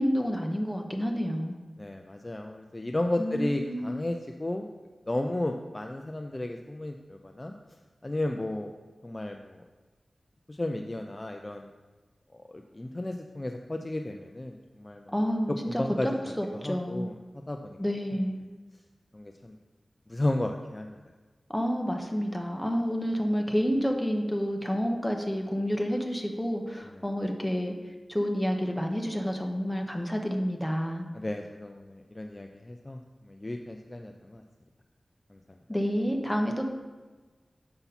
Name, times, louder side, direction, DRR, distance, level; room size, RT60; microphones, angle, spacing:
voice 1, 0.0-1.6 3.2-4.0 15.1-17.1 17.8-18.4 21.5-27.7 28.1-31.1 35.7-36.7, equal, 5° left, 2 dB, 1.0 m, -29 dB
voice 2, 1.8-4.7 5.1-7.5 8.0-8.7 9.0-9.6 10.5-11.7 12.3-15.1 15.7-16.1 16.6-17.8 19.1-19.6 20.1-21.0 31.1-33.0 33.2-34.4 35.3-35.4, left 1 dB, 30° left, 4 dB, 0.4 m, -33 dB
6.9 x 5.7 x 4.1 m, 1.3 s
wide cardioid pair, 60°, 0 cm